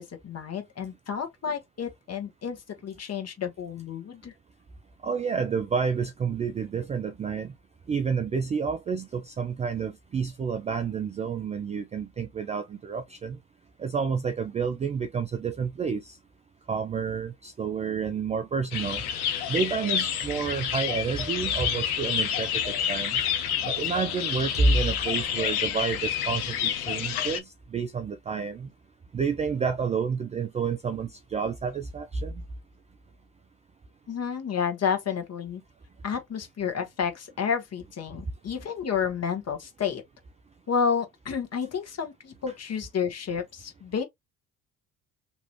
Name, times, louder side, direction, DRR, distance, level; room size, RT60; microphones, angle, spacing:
voice 1, 0.0-4.3 34.1-35.6 36.0-40.0 40.7-44.0, left 7 dB, 35° left, 1.3 m, -30 dB
voice 2, 5.0-7.5 7.9-13.4 13.8-16.2 16.7-19.0 19.5-23.2 23.6-28.7 29.1-32.4, right 5 dB, 15° right, 0.3 m, -29 dB
sound 1, 18.7-27.4, left 9 dB, 80° left, 0.8 m, -29 dB
3.1 x 2.4 x 2.9 m
figure-of-eight pair, 55°, 44 cm